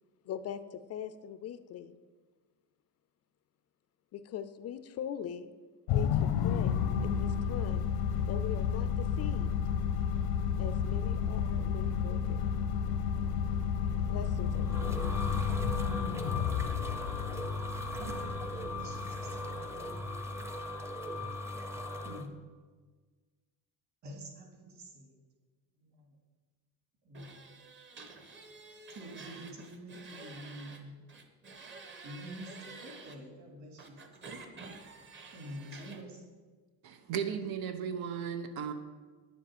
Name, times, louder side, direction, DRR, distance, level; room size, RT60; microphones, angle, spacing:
voice 1, 0.3-2.0 4.1-5.6 5.9-7.9 8.3-9.5 10.6-12.5 14.1-15.0, left 9 dB, 40° left, 12 dB, 0.5 m, -41 dB
sound 1, 5.9-20.4, left 8 dB, 90° left, 0.9 m, -32 dB
sound 2, 14.3-22.3, left 1 dB, 5° right, 0.7 m, -38 dB
voice 2, 18.0-19.8 22.0-22.3 24.0-25.2 25.8-26.1 27.0-27.4 28.9-31.0 32.0-34.4 35.3-36.2, equal, 45° right, 2 dB, 2.8 m, -47 dB
sound 3, 27.1-30.8 31.1-33.2 33.8-36.0, right 4 dB, 30° right, 1.1 m, -50 dB
voice 3, 36.8-38.7, right 7 dB, 85° right, 7 dB, 1.1 m, -35 dB
9.8 x 7.4 x 7.9 m, 1.4 s
cardioid pair, 180°, 37 cm